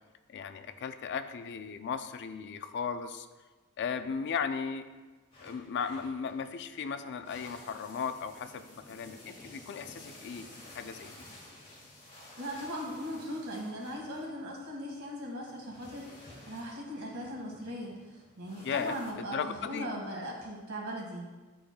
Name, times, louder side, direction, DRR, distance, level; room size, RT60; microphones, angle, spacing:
voice 1, 0.3-3.3 3.8-4.8 5.4-11.1 18.6-19.9, left 6 dB, 50° left, 10 dB, 0.4 m, -36 dB
sound 1, 5.3-19.1, left 1 dB, 25° left, 1.7 m, -53 dB
voice 2, 12.4-21.2, equal, 70° right, -1 dB, 1.7 m, -39 dB
10.0 x 5.0 x 2.2 m, 1.2 s
head